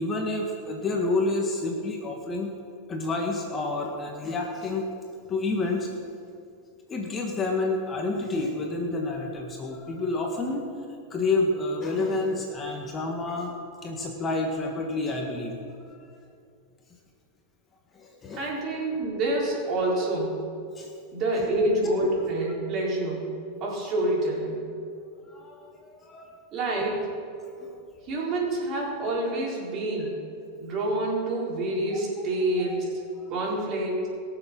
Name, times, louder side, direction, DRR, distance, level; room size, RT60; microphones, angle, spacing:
voice 1, 0.0-2.5 2.9-4.9 5.3-6.0 6.9-10.7 11.1-13.5 13.8-15.6 15.9-16.0 17.9-18.5 20.7-20.9 21.4-21.5 21.8-21.9 25.3-26.3 27.6-27.7 31.9-32.1 32.6-32.7 33.2-33.3, left 2 dB, 20° left, 1 dB, 1.6 m, -29 dB
voice 2, 18.4-20.4 21.1-23.3 23.6-24.6 26.5-27.2 28.1-30.2 30.6-32.9 33.3-34.1, right 1 dB, 40° right, -3 dB, 4.3 m, -27 dB
21.5 x 7.2 x 6.1 m, 2.5 s
supercardioid pair, 135°, 0 cm